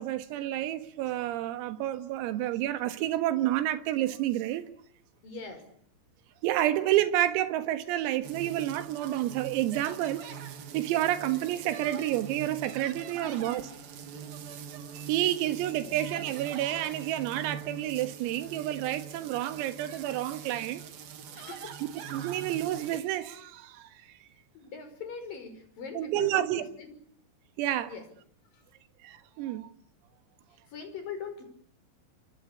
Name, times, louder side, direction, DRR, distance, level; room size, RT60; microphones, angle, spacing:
voice 1, 0.0-4.7 6.4-10.2 10.7-13.6 14.9-20.8 22.1-23.9 26.0-26.6 27.6-27.9 29.0-29.7, right 13 dB, 90° right, 4.2 m, -29 dB
voice 2, 5.2-5.7 13.1-13.7 15.8-16.0 21.3-21.8 24.5-26.9 27.9-28.1 30.7-31.4, left 5 dB, 45° left, 6.9 m, -41 dB
sound 1, 8.2-23.0, right 8 dB, 55° right, 3.3 m, -43 dB
29.0 x 24.0 x 8.6 m
omnidirectional pair, 5.9 m